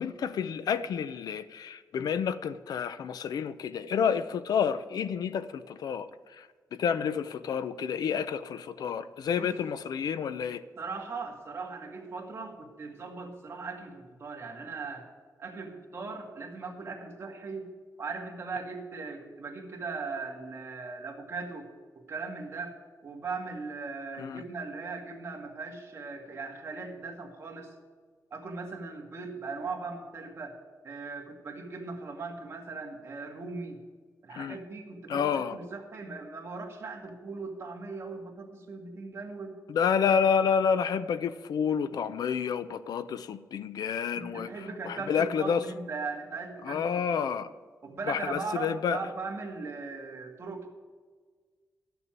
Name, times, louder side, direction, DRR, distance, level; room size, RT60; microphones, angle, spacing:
voice 1, 0.0-10.6 24.2-24.4 34.3-34.6 35.1-35.6 39.7-44.5 44.8-45.6 46.6-47.5 48.1-49.0, left 7 dB, 80° left, 13 dB, 0.6 m, -29 dB
voice 2, 10.8-15.1 15.4-17.7 18.0-21.7 22.1-22.8 23.0-27.7 28.3-30.6 30.8-33.8 34.2-39.6 44.1-47.3 47.8-50.7, right 4 dB, 40° right, 1 dB, 1.9 m, -39 dB
12.0 x 6.9 x 8.8 m, 1.5 s
wide cardioid pair, 170°, 7 cm